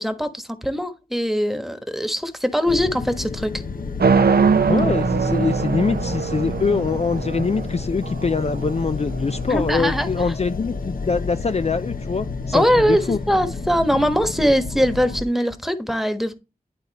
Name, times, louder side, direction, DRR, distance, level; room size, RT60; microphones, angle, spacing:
voice 1, 0.0-3.6 9.5-10.1 12.5-16.3, equal, ahead, 1.3 m, -21 dB
sound 1, 2.6-15.2, left 3 dB, 65° left, 0.9 m, -30 dB
sound 2, 4.0-10.1, right 5 dB, 85° right, 0.7 m, -22 dB
voice 2, 4.7-13.2, left 4 dB, 45° left, 0.4 m, -24 dB
11.0 x 4.0 x 4.1 m
wide cardioid pair, 60°, 16 cm